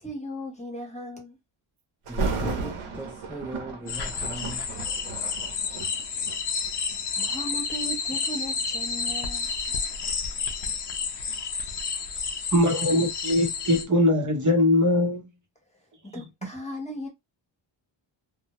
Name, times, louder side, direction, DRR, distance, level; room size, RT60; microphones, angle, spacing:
voice 1, 0.0-1.4 5.6-5.8 6.2-6.3 7.2-9.5 16.1-17.1, left 1 dB, 15° left, 0.9 m, -37 dB
voice 2, 2.1-4.6, right 1 dB, 5° right, 0.3 m, -39 dB
Thunder, 2.1-7.0 7.7-7.9 8.6-11.4 11.7-11.8, right 3 dB, 80° right, 0.8 m, -34 dB
sound 1, 3.9-13.8, left 5 dB, 55° left, 0.6 m, -30 dB
voice 3, 12.5-15.2, left 1 dB, 40° right, 0.8 m, -21 dB
2.1 x 2.0 x 2.8 m
wide cardioid pair, 90°, 48 cm